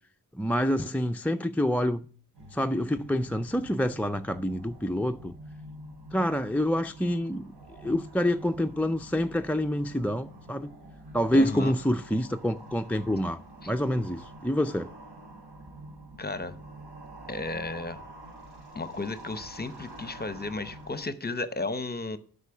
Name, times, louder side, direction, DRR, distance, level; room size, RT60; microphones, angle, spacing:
voice 1, 0.3-2.0 2.5-5.3 6.1-7.5 7.8-10.7 11.1-14.9, equal, 5° left, 0.3 m, -27 dB
sound 1, 2.3-21.1, right 1 dB, 85° right, 3.2 m, -47 dB
voice 2, 11.3-11.7 13.6-13.7 16.2-16.5 17.3-18.1 18.7-22.2, left 3 dB, 25° left, 0.8 m, -34 dB
8.2 x 5.5 x 6.9 m
wide cardioid pair, 105°, 40 cm